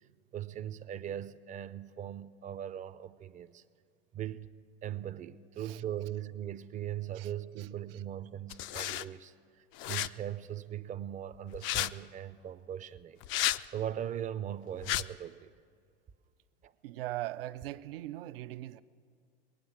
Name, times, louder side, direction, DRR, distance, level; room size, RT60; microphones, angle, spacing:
voice 1, 0.3-3.6 4.1-4.5 4.8-15.5 16.6-16.7, right 10 dB, 25° right, 0.5 m, -40 dB
sound 1, 8.5-9.0 9.8-10.1 11.5-11.9 13.2-13.6 14.8-15.0, left 14 dB, 40° left, 0.4 m, -32 dB
voice 2, 16.8-18.8, right 15 dB, 75° right, 0.6 m, -40 dB
21.5 x 9.3 x 7.3 m
hypercardioid pair, 110°, 29 cm